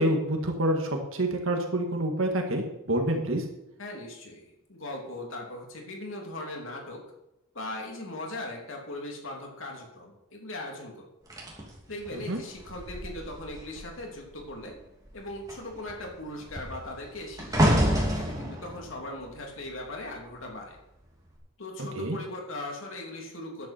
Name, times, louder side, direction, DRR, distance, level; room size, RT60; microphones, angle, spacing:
voice 1, 0.0-3.4 12.3-12.4 22.0-22.2, right 1 dB, 70° right, 3 dB, 1.9 m, -27 dB
voice 2, 3.8-7.0 7.5-11.0 11.9-14.7 15.1-20.8 21.6-23.7, left 1 dB, 70° left, 0 dB, 3.2 m, -39 dB
sound 1, 11.3-14.0 14.3-14.7 15.0-20.3 21.1-21.3, equal, 15° right, 2.9 m, -29 dB
13.5 x 10.5 x 4.5 m, 0.90 s
head